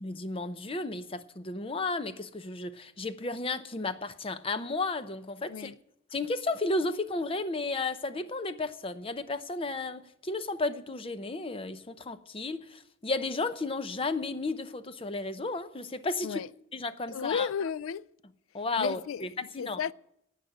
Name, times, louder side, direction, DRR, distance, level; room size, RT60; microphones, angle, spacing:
voice 1, 0.0-5.7 6.1-16.4 16.7-17.5 18.5-19.8, left 3 dB, 25° left, 0.6 m, -33 dB
voice 2, 5.5-5.8 16.2-16.5 17.1-18.1 18.8-19.9, left 7 dB, 90° left, 0.4 m, -34 dB
11.0 x 8.3 x 8.8 m
head